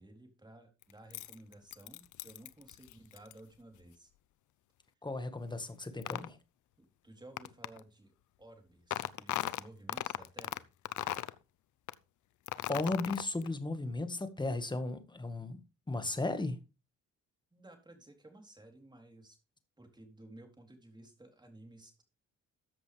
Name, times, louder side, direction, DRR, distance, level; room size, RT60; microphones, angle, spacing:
voice 1, 0.0-4.1 6.8-8.1 8.4-10.6 17.5-19.4 19.8-22.0, right 1 dB, 15° right, 3.8 m, -55 dB
sound 1, 0.8-3.3 6.0-6.3 7.4-7.8 8.9-10.6 10.9-11.4 11.9-12.0 12.5-13.5, left 14 dB, 75° left, 0.8 m, -37 dB
voice 2, 5.0-6.4 12.7-15.6 15.9-16.6, left 2 dB, 15° left, 1.8 m, -35 dB
13.5 x 7.9 x 3.5 m
cardioid pair, 90°, 30 cm